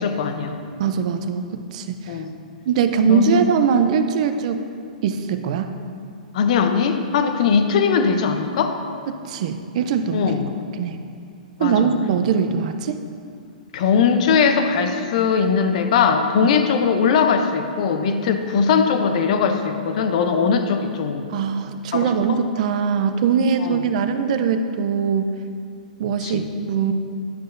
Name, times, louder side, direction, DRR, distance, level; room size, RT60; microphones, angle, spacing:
voice 1, 0.0-0.6 2.1-2.3 3.1-3.4 6.3-8.8 10.1-10.5 11.6-11.9 13.7-21.3 21.9-22.4 23.6-23.8 26.2-26.4, left 6 dB, 60° left, 7 dB, 0.6 m, -20 dB
voice 2, 0.8-2.1 2.7-4.6 5.0-5.7 9.1-10.3 10.8-11.0 11.6-13.0 21.3-25.3 26.0-26.9, right 6 dB, 55° right, 8 dB, 0.5 m, -21 dB
10.0 x 6.6 x 2.6 m, 2.4 s
hypercardioid pair, 120°, 4 cm